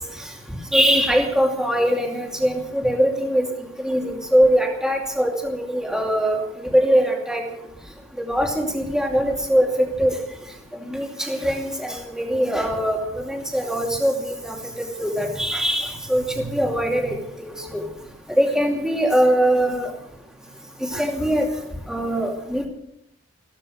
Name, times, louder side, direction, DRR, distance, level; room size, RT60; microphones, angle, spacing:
voice 1, 0.7-3.5 3.8-7.4 8.2-10.2 10.9-17.8 18.4-19.9 20.8-21.5 21.9-22.7, equal, 5° right, 1 dB, 2.5 m, -22 dB
15.5 x 13.5 x 6.5 m, 0.81 s
head